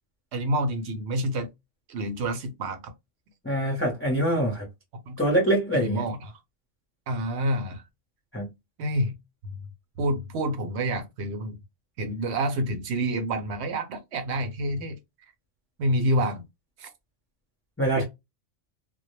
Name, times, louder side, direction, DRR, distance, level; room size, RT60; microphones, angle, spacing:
voice 1, 0.3-1.5 1.9-2.8 5.1-5.2 5.7-6.3 7.1-7.8 8.8-9.2 10.0-11.6 12.0-15.0 15.8-16.4 16.8-16.9, right 1 dB, 70° right, 0.8 m, -28 dB
voice 2, 3.4-4.7 5.2-6.0 8.3-8.5 17.8-18.0, right 1 dB, 15° left, 0.5 m, -24 dB
2.1 x 2.0 x 3.0 m
omnidirectional pair, 1.3 m